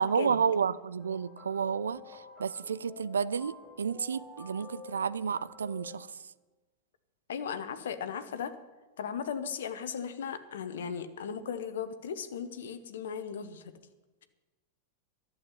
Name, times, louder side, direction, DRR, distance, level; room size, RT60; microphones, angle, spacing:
voice 1, 0.0-6.1, right 6 dB, 70° right, 0.4 m, -31 dB
sound 1, 1.0-6.0, left 4 dB, 25° left, 4.3 m, -49 dB
voice 2, 7.3-8.6 9.0-13.7, left 7 dB, 60° left, 0.9 m, -37 dB
12.0 x 7.3 x 9.7 m
figure-of-eight pair, 90°, 0 cm